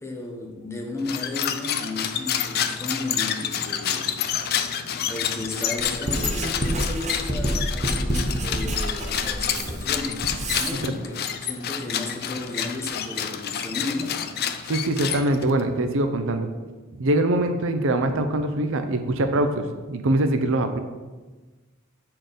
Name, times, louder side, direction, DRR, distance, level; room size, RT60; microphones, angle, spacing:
voice 1, 0.0-4.5 5.1-14.2, left 2 dB, 15° left, 0 dB, 1.0 m, -34 dB
sound 1, 1.0-15.6, left 8 dB, 50° left, 0.5 m, -29 dB
Writing, 5.8-10.8, right 1 dB, 35° right, 1.0 m, -28 dB
voice 2, 14.7-16.5 17.0-20.8, right 1 dB, 65° right, 7 dB, 0.6 m, -23 dB
7.7 x 4.4 x 5.1 m, 1.3 s
head